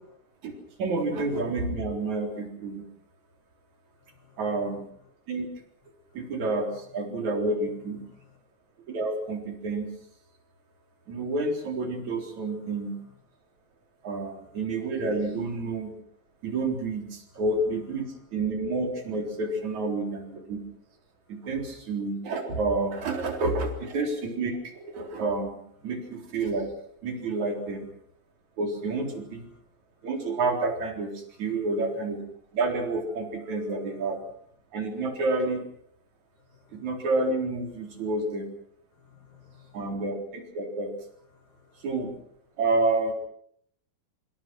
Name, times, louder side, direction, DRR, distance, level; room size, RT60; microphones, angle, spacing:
voice 1, 0.4-2.9 4.4-4.9 5.3-5.5 6.1-8.0 8.9-9.9 11.1-13.0 14.0-15.9 16.4-20.6 21.3-26.7 27.0-27.9 28.6-29.5 30.0-32.2 32.5-34.2 34.7-35.6 36.7-38.5 39.7-40.9 41.8-42.1 42.6-43.1, right 2 dB, 55° right, 4 dB, 5.1 m, -29 dB
voice 2, 4.0-4.8 6.1-6.3 8.0-8.4 12.4-12.8 17.3-17.4 18.0-18.2 21.3-21.5 29.1-29.6 31.5-31.6 33.8-34.0 36.4-37.0 38.0-38.1 38.9-40.0 41.3-41.9, left 8 dB, 70° left, 2 dB, 6.6 m, -59 dB
25.5 x 25.5 x 6.2 m, 0.68 s
omnidirectional pair, 4.0 m